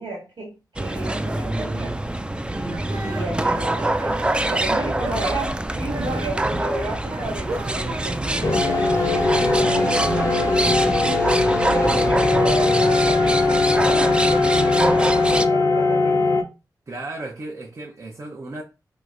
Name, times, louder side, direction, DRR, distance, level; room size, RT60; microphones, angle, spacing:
voice 1, 0.0-1.9 2.5-8.8 9.3-11.2 11.7-16.4, right 2 dB, 90° right, 1.8 m, -32 dB
sound 1, 0.8-15.5, right 1 dB, 15° right, 0.3 m, -25 dB
sound 2, 2.7-4.5 4.9-5.5 5.8-11.0 11.4-16.4, right 1 dB, 60° right, 1.3 m, -34 dB
voice 2, 4.5-5.0 11.8-12.2 16.9-18.6, right 2 dB, 45° right, 0.7 m, -35 dB
sound 3, 8.4-16.4, left 3 dB, 45° left, 0.5 m, -20 dB
3.1 x 3.1 x 2.4 m
cardioid pair, 55°, 7 cm